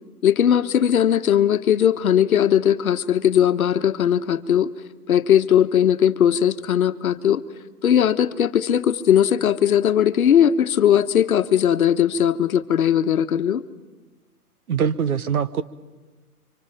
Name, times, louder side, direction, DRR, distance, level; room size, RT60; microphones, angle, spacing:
voice 1, 0.2-4.7 5.1-7.4 7.8-13.6, left 9 dB, 65° left, 10 dB, 1.2 m, -19 dB
voice 2, 14.7-15.6, right 7 dB, 70° right, 14 dB, 1.3 m, -22 dB
29.5 x 25.0 x 5.7 m, 1.3 s
hypercardioid pair, 165°, 46 cm